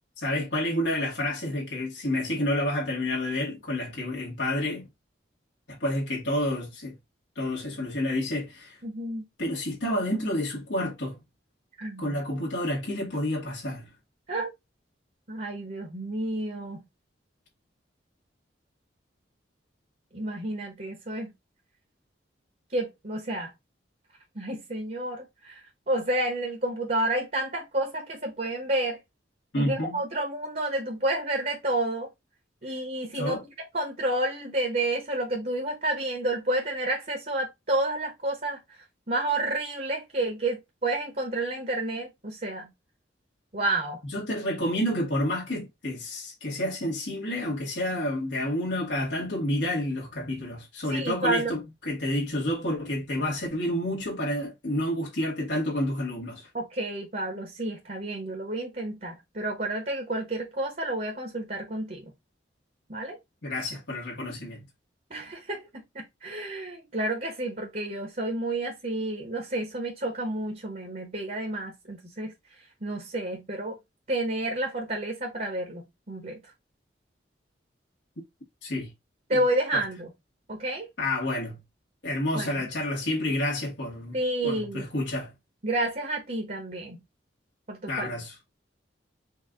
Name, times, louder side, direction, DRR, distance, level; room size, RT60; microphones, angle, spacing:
voice 1, 0.2-4.9 5.7-6.9 7.3-8.8 9.4-11.2 12.0-13.9 29.5-30.0 33.1-33.4 44.0-56.5 63.4-64.6 78.6-78.9 79.3-79.4 79.7-79.8 81.0-81.6 82.0-84.2 84.4-85.3 87.9-88.4, left 1 dB, 70° left, 1.5 m, -29 dB
voice 2, 8.8-9.2 11.8-12.2 14.3-14.5 15.3-16.8 20.1-21.3 22.7-23.5 24.3-25.6 25.9-29.0 29.6-32.1 32.6-33.4 33.7-38.6 39.1-42.7 43.5-44.0 50.9-51.5 56.5-62.0 62.9-63.2 65.1-72.3 72.8-73.8 74.1-76.4 79.3-80.1 80.5-80.9 82.3-82.6 84.1-84.9 85.6-87.0 87.7-88.1, right 1 dB, 45° right, 1.1 m, -30 dB
4.6 x 2.3 x 3.6 m
head